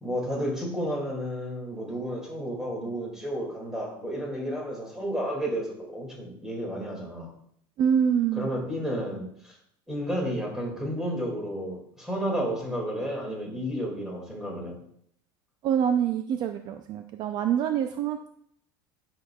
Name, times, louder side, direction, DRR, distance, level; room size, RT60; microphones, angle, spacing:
voice 1, 0.0-7.3 8.3-9.5 9.9-14.8, equal, 5° right, -2 dB, 2.1 m, -32 dB
voice 2, 7.8-8.5 15.6-18.3, right 8 dB, 40° right, 7 dB, 0.4 m, -25 dB
10.5 x 6.4 x 2.3 m, 0.67 s
supercardioid pair, 150°, 11 cm